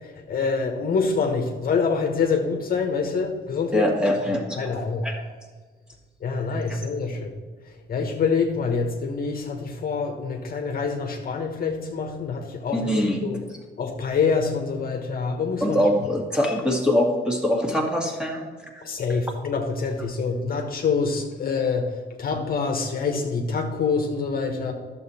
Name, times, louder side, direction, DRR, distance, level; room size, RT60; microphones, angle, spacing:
voice 1, 0.0-3.9 4.6-5.1 6.2-7.4 7.9-13.4 13.8-15.8 18.8-24.7, left 5 dB, 50° left, 3 dB, 1.2 m, -26 dB
voice 2, 3.7-5.2 6.7-6.8 12.7-13.2 15.6-18.5, left 1 dB, 5° right, 1 dB, 2.0 m, -23 dB
11.0 x 7.3 x 4.3 m, 1.4 s
cardioid pair, 90°, 20 cm